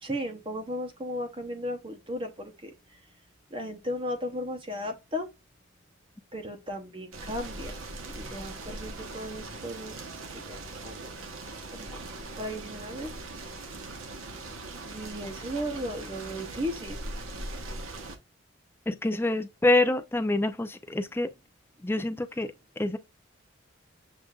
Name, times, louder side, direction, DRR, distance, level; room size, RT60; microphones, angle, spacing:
voice 1, 0.0-2.7 3.5-5.3 6.3-7.8 8.1-11.1 11.7-12.0 12.4-13.1 14.9-17.0, equal, 25° right, 0.7 m, -36 dB
sound 1, 7.1-18.2, right 2 dB, 80° right, 1.1 m, -40 dB
voice 2, 18.9-21.3 21.8-22.5 22.8-23.0, left 2 dB, 10° left, 0.4 m, -26 dB
7.3 x 2.5 x 2.3 m
head